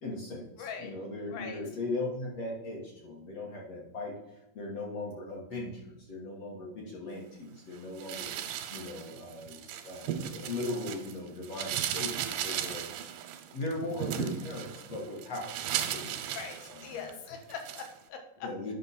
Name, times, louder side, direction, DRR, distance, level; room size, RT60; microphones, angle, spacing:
voice 1, 0.0-8.3 8.7-12.9 13.5-17.1 18.4-18.7, left 2 dB, 60° left, -2 dB, 1.8 m, -39 dB
voice 2, 0.6-0.9 1.3-1.6 16.3-18.5, left 6 dB, 80° left, 4 dB, 3.0 m, -41 dB
sound 1, 8.0-11.1 11.4-17.1 17.5-17.9, right 10 dB, 90° right, 2.5 m, -36 dB
10.0 x 5.6 x 4.1 m, 0.91 s
omnidirectional pair, 4.3 m